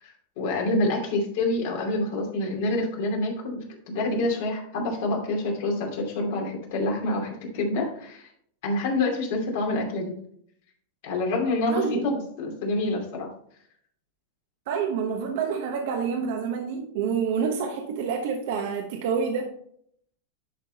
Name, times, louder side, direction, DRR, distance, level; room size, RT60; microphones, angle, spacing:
voice 1, 0.0-8.3 8.6-10.1 11.0-13.3, left 2 dB, 65° left, 0 dB, 2.6 m, -27 dB
voice 2, 11.7-12.0 14.7-19.5, right 6 dB, 65° right, 3 dB, 1.1 m, -28 dB
10.5 x 3.8 x 4.1 m, 0.66 s
hypercardioid pair, 115°, 0 cm